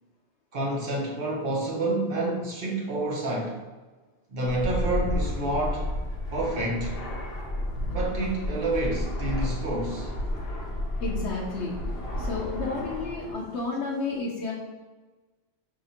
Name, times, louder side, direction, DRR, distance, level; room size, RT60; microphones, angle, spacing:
voice 1, 0.5-3.6 4.3-5.9 6.3-7.0 7.9-10.1, right 2 dB, 55° right, -2 dB, 1.0 m, -28 dB
Fixed-wing aircraft airplane, 4.5-13.3, left 1 dB, 65° left, 0.9 m, -31 dB
voice 2, 11.0-11.7 12.2-14.5, left 3 dB, 85° left, -4 dB, 0.9 m, -31 dB
4.8 x 2.8 x 2.7 m, 1.3 s
omnidirectional pair, 1.1 m